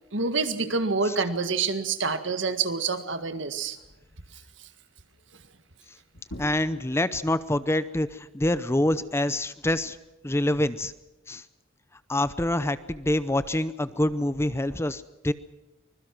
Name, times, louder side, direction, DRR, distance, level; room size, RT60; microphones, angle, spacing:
voice 1, 0.1-3.8 4.6-4.7, right 4 dB, 65° right, 9 dB, 1.9 m, -27 dB
sound 1, 6.1-11.3, equal, 80° left, 6.0 m, -49 dB
voice 2, 6.4-10.0 10.2-10.9 11.3-11.4 12.1-15.3, left 1 dB, 15° left, 14 dB, 0.7 m, -26 dB
24.5 x 21.5 x 6.1 m, 0.99 s
head